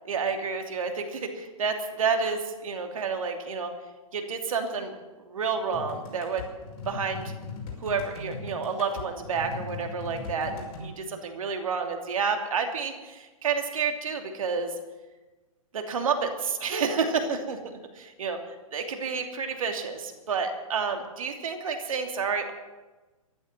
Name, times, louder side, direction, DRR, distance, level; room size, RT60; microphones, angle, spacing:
voice 1, 0.0-3.7 4.1-6.5 6.9-7.3 7.8-14.7 15.7-18.4 18.7-22.5, right 5 dB, 70° right, 4 dB, 2.9 m, -30 dB
sound 1, 5.7-10.9, left 4 dB, 45° left, 5.7 m, -39 dB
15.0 x 11.5 x 7.7 m, 1.2 s
hypercardioid pair, 125°, 18 cm